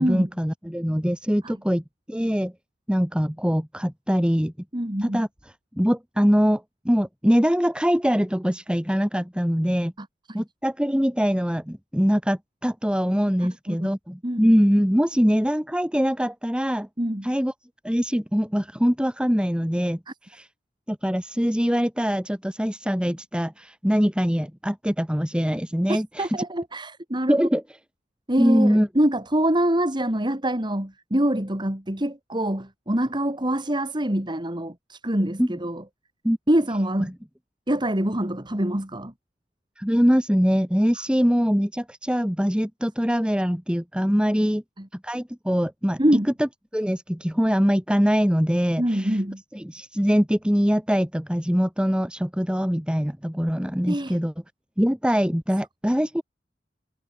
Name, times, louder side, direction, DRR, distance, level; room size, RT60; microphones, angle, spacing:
voice 1, 0.0-2.5 2.9-4.5 5.0-5.3 5.8-9.9 10.3-16.9 17.2-17.5 17.8-20.0 20.3-20.5 20.9-26.4 27.3-27.6 28.4-28.9 35.4-35.6 36.2-36.4 39.8-44.6 45.0-46.0 46.4-46.5 46.7-49.2 49.5-54.3 54.8-56.2, equal, 5° right, 2.1 m, -23 dB
voice 2, 4.7-5.2 10.0-10.4 13.7-13.9 14.2-14.6 17.0-17.3 25.9-27.5 28.3-35.8 36.5-37.1 37.7-39.1 44.8-44.9 46.0-46.3 48.8-49.4 53.9-54.2, right 1 dB, 25° right, 3.0 m, -25 dB
head